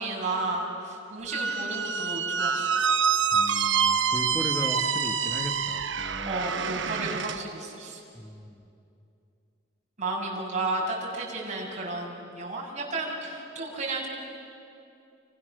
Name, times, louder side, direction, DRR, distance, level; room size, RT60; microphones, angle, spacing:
voice 1, 0.0-2.7 6.2-8.0 10.0-14.1, right 2 dB, 40° right, -2 dB, 6.6 m, -32 dB
Squeak, 1.3-7.4, right 6 dB, 70° right, 1.0 m, -26 dB
voice 2, 3.3-6.4 8.1-8.6, left 1 dB, 5° left, 5 dB, 1.5 m, -36 dB
29.5 x 29.5 x 6.7 m, 2.6 s
head